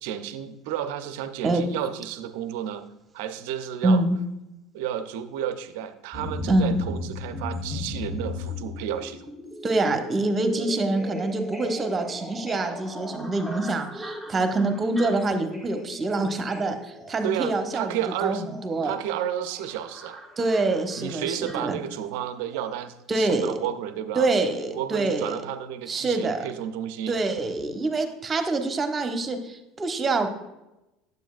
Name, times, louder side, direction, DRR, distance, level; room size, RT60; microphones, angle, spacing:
voice 1, 0.0-2.8 3.1-4.0 4.7-9.2 17.2-18.4 18.8-20.2 21.0-24.3 24.7-27.1, right 10 dB, 65° right, 11 dB, 0.5 m, -32 dB
voice 2, 3.8-4.2 6.5-6.8 9.6-18.9 20.4-21.8 23.1-23.5 24.2-25.4 25.9-26.4 27.1-30.3, right 2 dB, 30° right, 7 dB, 0.9 m, -25 dB
sound 1, 6.1-22.2 22.5-22.6, left 1 dB, 15° left, 1.5 m, -37 dB
9.1 x 7.8 x 2.4 m, 0.95 s
hypercardioid pair, 70°, 0 cm